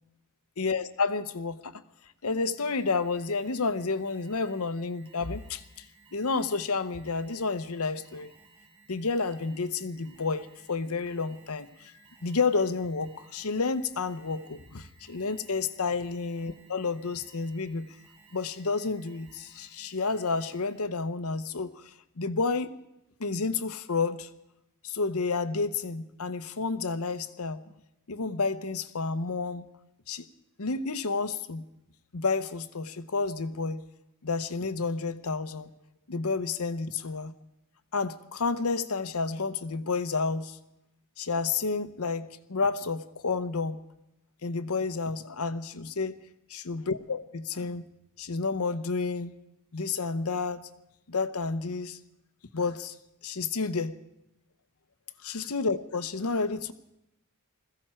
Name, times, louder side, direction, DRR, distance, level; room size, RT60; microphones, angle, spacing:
voice 1, 0.6-1.8 2.2-5.8 6.1-8.3 8.9-11.9 12.2-17.9 18.3-22.7 23.2-24.3 24.8-27.6 28.1-29.6 30.1-30.3 30.6-31.6 32.1-33.8 34.2-35.7 36.1-37.3 37.9-40.6 41.2-43.8 44.4-46.1 46.5-47.8 48.2-49.3 49.7-50.6 51.1-52.0 52.5-52.9 53.2-54.0 55.2-56.7, left 4 dB, 85° left, 12 dB, 0.9 m, -30 dB
Alarm, 2.6-21.0, right 4 dB, 25° right, 4.2 m, -59 dB
21.0 x 15.0 x 4.4 m, 0.86 s
head